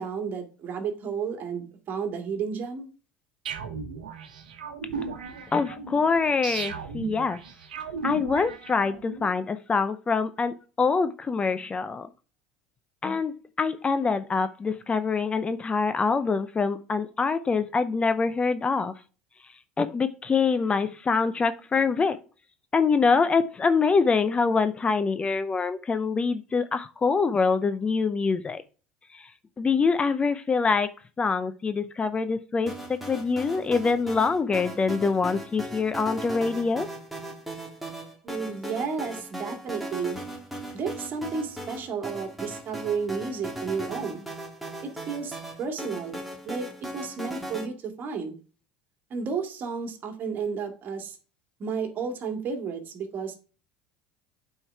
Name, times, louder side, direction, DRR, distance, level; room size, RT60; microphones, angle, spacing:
voice 1, 0.0-2.9 38.2-40.2 40.7-44.3 44.8-48.3 49.1-51.2 51.6-53.4, right 5 dB, 45° right, 2.1 m, -32 dB
sound 1, 3.5-9.3, right 5 dB, 85° right, 1.0 m, -36 dB
voice 2, 5.5-7.4 8.0-12.1 13.0-18.9 19.8-22.2 22.7-28.6 29.1-29.3 29.6-30.9 31.2-36.9, left 4 dB, 25° left, 0.6 m, -25 dB
sound 2, 32.7-47.7, right 1 dB, ahead, 2.5 m, -38 dB
8.7 x 4.6 x 4.6 m
hypercardioid pair, 75°, 4 cm